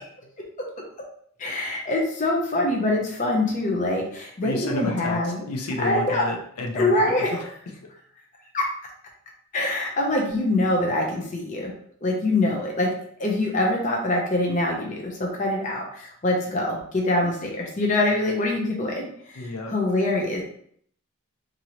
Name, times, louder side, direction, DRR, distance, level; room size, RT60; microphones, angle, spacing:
voice 1, 1.4-5.4 5.8-6.3 6.7-7.4 8.5-8.7 9.5-11.7 12.0-12.9 13.2-19.1 19.7-20.4, left 2 dB, 35° left, -1 dB, 0.5 m, -24 dB
voice 2, 4.4-6.9 7.3-7.5 19.3-19.7, left 2 dB, 90° left, 1 dB, 0.6 m, -31 dB
2.8 x 2.6 x 2.9 m, 0.64 s
head